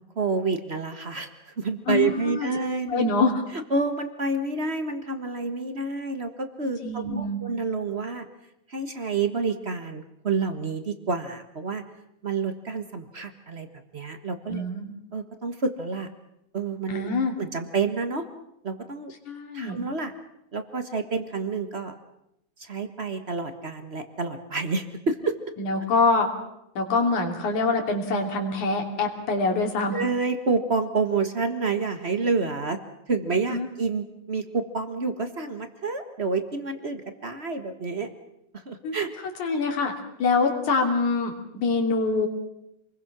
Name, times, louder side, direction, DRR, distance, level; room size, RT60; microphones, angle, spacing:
voice 1, 0.2-3.0 3.5-8.3 8.7-11.8 12.2-13.7 13.9-14.6 15.1-16.1 16.5-18.2 18.6-19.1 19.5-20.1 20.5-21.9 22.6-25.3 29.9-32.8 33.1-38.1 38.5-39.1, right 4 dB, 40° right, 7 dB, 0.9 m, -28 dB
voice 2, 1.9-2.5 2.9-3.4 6.8-7.4 14.5-14.9 16.9-17.4 19.3-19.8 25.6-26.3 26.8-30.0 33.5-33.7 38.8-39.0 39.4-39.9 40.2-42.3, left 3 dB, 80° left, 2 dB, 4.4 m, -25 dB
27.5 x 21.5 x 6.1 m, 0.81 s
omnidirectional pair, 3.4 m